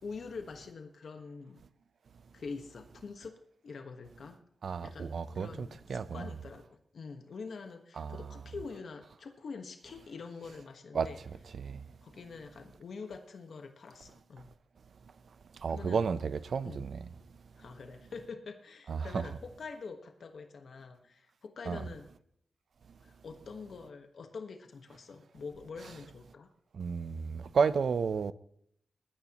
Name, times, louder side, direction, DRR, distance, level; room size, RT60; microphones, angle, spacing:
voice 1, 0.0-1.6 2.3-3.4 3.6-4.4 4.8-11.2 12.0-14.5 15.7-16.0 16.6-16.9 17.6-22.1 23.0-26.5, left 4 dB, 70° left, 1.4 m, -45 dB
voice 2, 4.6-6.3 8.0-8.2 10.9-11.1 11.6-11.8 15.6-17.0 18.9-19.2 21.7-21.8 26.7-28.3, right 5 dB, 70° right, 0.7 m, -32 dB
20.0 x 13.5 x 3.0 m
wide cardioid pair, 135°, 0 cm